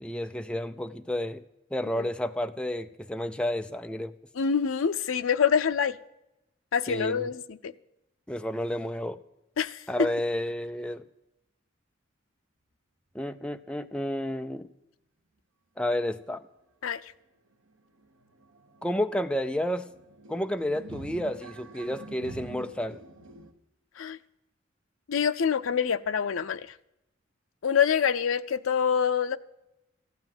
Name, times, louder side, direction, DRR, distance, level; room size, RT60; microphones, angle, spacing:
voice 1, 0.0-1.4 1.7-4.1 6.9-7.3 8.3-9.2 9.9-11.0 13.1-14.7 15.8-16.4 18.8-19.9 20.3-23.0, left 1 dB, 5° left, 0.4 m, -31 dB
voice 2, 4.4-6.0 6.7-7.7 9.6-9.8 16.8-17.0 24.0-24.2 25.1-26.7 27.6-29.4, left 7 dB, 90° left, 0.5 m, -26 dB
sound 1, 16.6-16.7 17.1-17.2 17.5-23.5, right 2 dB, 85° right, 1.3 m, -47 dB
14.5 x 9.3 x 7.7 m
head